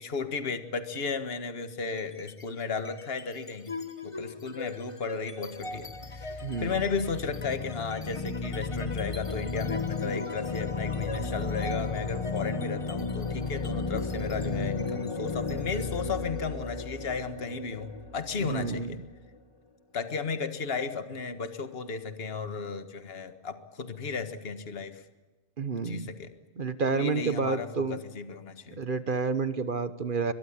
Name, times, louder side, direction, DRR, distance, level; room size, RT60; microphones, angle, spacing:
voice 1, 0.0-3.7 4.0-19.0 19.9-25.0 25.8-26.3 26.9-28.8, left 5 dB, 45° left, 9 dB, 1.7 m, -34 dB
sound 1, 1.9-2.4 2.8-19.4, left 3 dB, 25° left, 1.3 m, -34 dB
voice 2, 6.4-6.9 18.4-19.0 25.6-26.1 26.6-28.0 28.8-30.3, right 4 dB, 40° right, 12 dB, 1.2 m, -29 dB
23.0 x 22.0 x 8.6 m, 1.2 s
omnidirectional pair, 1.4 m